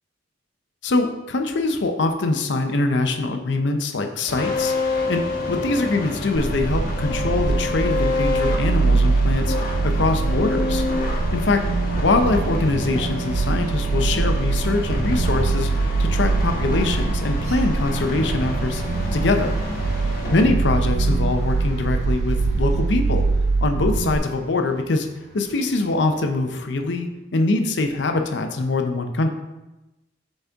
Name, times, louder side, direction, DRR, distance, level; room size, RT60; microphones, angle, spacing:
voice 1, 0.8-4.7 5.1-10.8 11.3-11.6 12.0-15.7 16.0-18.8 19.1-19.5 20.3-23.2 23.6-25.1 25.3-29.3, left 3 dB, 65° left, 5 dB, 0.6 m, -23 dB
sound 1, 4.3-20.5, left 2 dB, 50° left, 1.1 m, -28 dB
sound 2, 6.4-24.2, right 3 dB, 60° right, 0.3 m, -23 dB
sound 3, 12.9-13.1 13.4-26.5, equal, 35° right, 1.0 m, -42 dB
7.0 x 4.2 x 3.5 m, 1.0 s
head